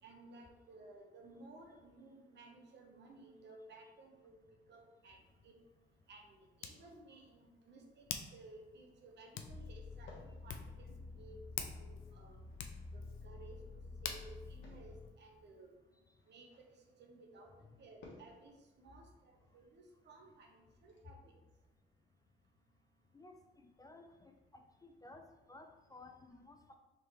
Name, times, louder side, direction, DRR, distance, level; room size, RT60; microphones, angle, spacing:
voice 1, 0.0-4.4 4.7-5.2 5.4-5.6 6.1-11.4 11.8-12.4 12.9-15.7 16.3-21.3, right 2 dB, 60° right, 2 dB, 0.9 m, -58 dB
Hands, 5.0-15.8, left 8 dB, 90° left, 0.4 m, -50 dB
sound 1, 8.6-21.0, left 2 dB, 70° left, 1.1 m, -65 dB
sound 2, 9.4-15.1, left 3 dB, ahead, 1.4 m, -50 dB
voice 2, 23.1-26.8, left 2 dB, 20° left, 5 dB, 0.3 m, -57 dB
4.4 x 3.2 x 3.0 m, 1.2 s
cardioid pair, 90°, 20 cm